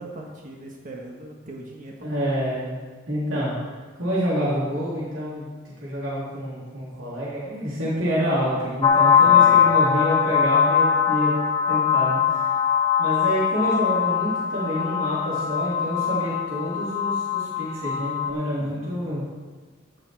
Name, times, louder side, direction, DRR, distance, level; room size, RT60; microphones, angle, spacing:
voice 1, 0.0-2.1 9.2-9.6 18.6-19.0, right 1 dB, 45° right, 0 dB, 1.4 m, -40 dB
voice 2, 2.0-2.8 3.1-3.6 4.0-11.4 11.7-12.4 13.0-19.2, equal, 85° right, -7 dB, 3.6 m, -27 dB
sound 1, 8.8-18.3, left 7 dB, 25° left, 0.6 m, -21 dB
14.5 x 6.8 x 4.6 m, 1.4 s
head